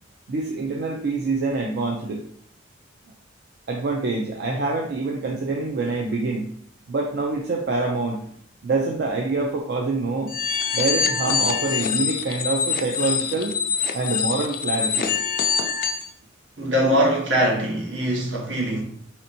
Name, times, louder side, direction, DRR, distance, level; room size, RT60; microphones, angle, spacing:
voice 1, 0.3-2.2 3.7-6.5 6.9-8.2 8.6-10.3 10.7-13.6 13.9-15.1, right 3 dB, 60° right, 0 dB, 0.4 m, -25 dB
sound 1, 10.3-16.1, left 6 dB, 45° left, 0.3 m, -24 dB
voice 2, 16.6-18.8, equal, 75° right, -2 dB, 1.1 m, -22 dB
4.2 x 2.8 x 2.6 m, 0.64 s
head